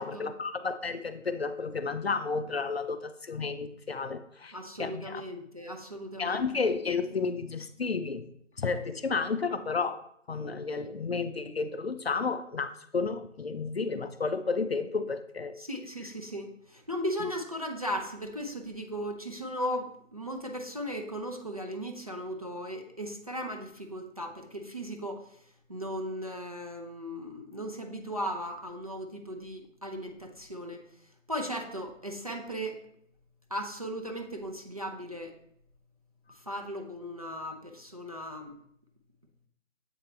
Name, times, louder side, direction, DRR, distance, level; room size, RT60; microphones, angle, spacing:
voice 1, 0.0-4.5 4.8-5.2 6.2-8.3 8.6-10.0 10.3-15.6, left 4 dB, 55° left, 11 dB, 0.5 m, -32 dB
voice 2, 4.5-6.4 15.6-25.3 25.7-30.8 31.3-32.8 33.5-35.3 36.3-38.5, equal, 30° right, 2 dB, 0.5 m, -37 dB
7.8 x 4.5 x 3.2 m, 0.70 s
figure-of-eight pair, 160°, 38 cm